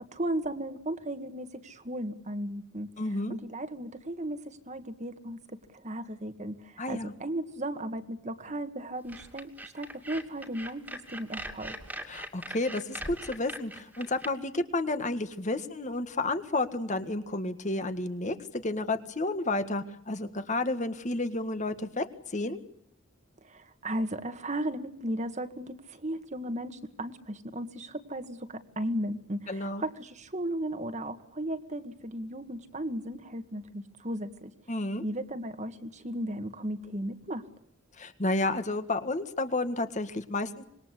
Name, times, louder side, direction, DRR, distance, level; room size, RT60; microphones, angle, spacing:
voice 1, 0.0-2.9 3.3-5.4 5.7-11.7 23.4-34.5 35.0-37.5, right 1 dB, 35° right, 9 dB, 1.8 m, -35 dB
voice 2, 3.0-3.4 6.8-7.1 12.1-22.1 22.3-22.6 29.5-29.8 34.7-35.0 38.0-40.6, left 2 dB, 35° left, 9 dB, 1.8 m, -31 dB
sound 1, 9.1-14.3, right 1 dB, 10° right, 2.4 m, -41 dB
26.0 x 21.5 x 8.3 m, 0.74 s
head